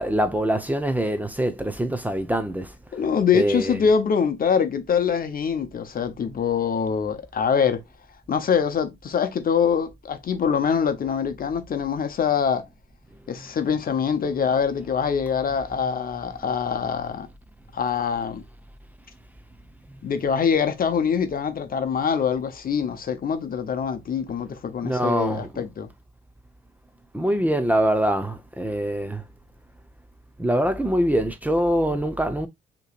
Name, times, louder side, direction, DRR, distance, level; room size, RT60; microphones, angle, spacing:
voice 1, 0.0-2.7 3.3-3.8 24.8-25.6 27.1-29.2 30.4-32.5, right 1 dB, 10° right, 0.7 m, -24 dB
voice 2, 2.9-7.8 8.3-12.7 13.3-17.3 17.7-18.4 20.0-25.9, left 6 dB, 45° left, 0.8 m, -24 dB
6.5 x 3.0 x 2.4 m
cardioid pair, 90°, 20 cm